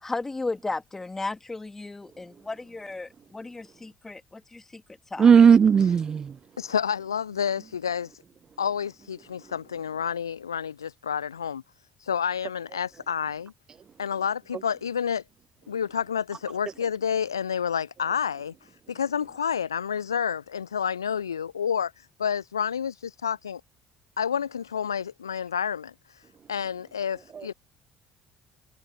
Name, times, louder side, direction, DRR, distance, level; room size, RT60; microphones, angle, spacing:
voice 1, 0.0-4.8 5.1-5.3, left 3 dB, 15° left, 2.4 m, -35 dB
voice 2, 5.2-6.3, right 7 dB, 35° right, 0.4 m, -16 dB
voice 3, 6.6-8.1 8.6-11.6 12.0-13.5 14.0-15.2 15.7-18.5 18.9-21.9 22.2-23.6 24.2-25.9 26.5-27.5, left 7 dB, 80° left, 0.3 m, -29 dB
figure-of-eight pair, 55°, 2 cm